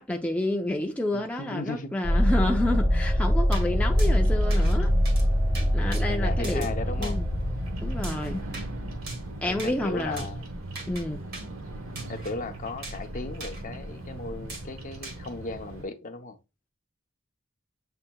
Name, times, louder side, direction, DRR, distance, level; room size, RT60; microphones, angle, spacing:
voice 1, 0.0-4.9 5.7-7.2 7.8-8.4 9.4-10.3 10.9-11.2, left 1 dB, 5° left, 0.5 m, -29 dB
voice 2, 1.1-1.9 2.5-2.6 5.6-7.2 9.0-9.2 9.5-10.4 12.1-16.4, left 3 dB, 40° left, 0.7 m, -36 dB
sound 1, 2.0-9.3, equal, 15° right, 1.6 m, -24 dB
sound 2, 3.5-3.7 4.0-4.1 4.5-4.8 5.1-5.3 5.5-6.0 6.4-6.7 7.0-7.2 8.0-8.7 9.1-9.3 9.6-9.7 10.2-10.3 10.8-11.0 11.3-11.5 12.0-12.3 12.8-13.0 13.4-13.6 14.5-14.7 15.0-15.2, right 3 dB, 50° right, 1.7 m, -40 dB
Bird vocalization bird call bird song, 3.8-15.8, right 1 dB, 90° right, 1.1 m, -39 dB
7.6 x 2.9 x 2.2 m
head